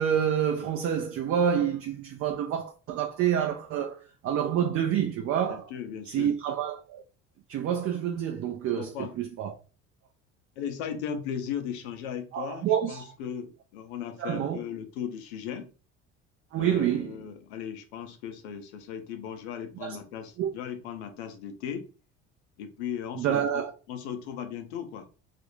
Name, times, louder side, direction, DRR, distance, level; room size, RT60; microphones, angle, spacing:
voice 1, 0.0-4.0 4.2-5.7 6.1-7.0 7.5-9.5 12.3-13.0 14.2-14.6 16.5-17.2 19.8-20.0 20.4-20.5 23.2-23.7, right 9 dB, 45° right, 0.4 m, -28 dB
voice 2, 5.5-6.4 8.8-9.1 10.6-15.7 16.5-21.8 22.6-23.6 23.9-25.1, left 8 dB, 90° left, 0.6 m, -37 dB
2.4 x 2.0 x 3.0 m
supercardioid pair, 80°, 32 cm